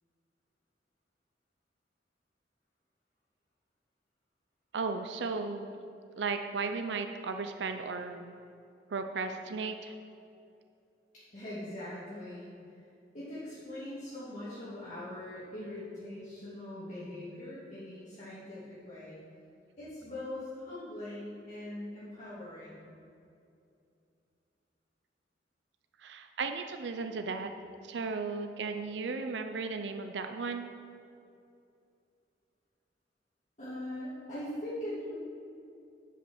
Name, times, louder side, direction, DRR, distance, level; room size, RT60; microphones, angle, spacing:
voice 1, 4.7-5.8 6.2-8.3 8.9-9.9 26.0-27.5 27.8-30.7, right 4 dB, 85° right, 7 dB, 0.5 m, -35 dB
voice 2, 11.1-12.5 13.1-19.2 19.8-22.8 33.6-35.1, left 1 dB, 45° left, -11 dB, 2.3 m, -41 dB
9.9 x 5.8 x 6.3 m, 2.6 s
head